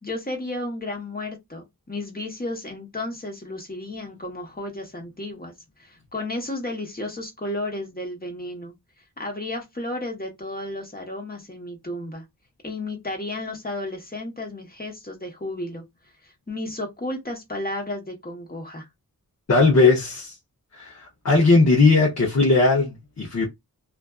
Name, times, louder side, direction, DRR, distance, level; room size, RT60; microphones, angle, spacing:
voice 1, 0.0-5.5 5.8-8.7 9.2-12.2 12.6-15.8 16.2-18.9, left 1 dB, 25° left, 1.0 m, -33 dB
voice 2, 19.5-20.3 20.7-23.5, left 3 dB, 50° left, 0.7 m, -18 dB
2.4 x 2.3 x 2.3 m
wide cardioid pair, 50°, 35 cm